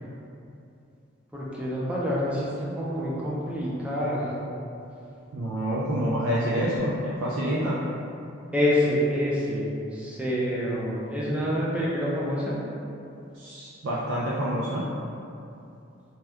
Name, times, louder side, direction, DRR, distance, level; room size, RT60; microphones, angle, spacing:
voice 1, 1.3-4.3 8.5-12.6, equal, 5° right, -7 dB, 0.4 m, -27 dB
voice 2, 5.3-7.8 13.3-14.9, equal, 85° right, -7 dB, 0.4 m, -27 dB
2.8 x 2.2 x 3.4 m, 2.7 s
head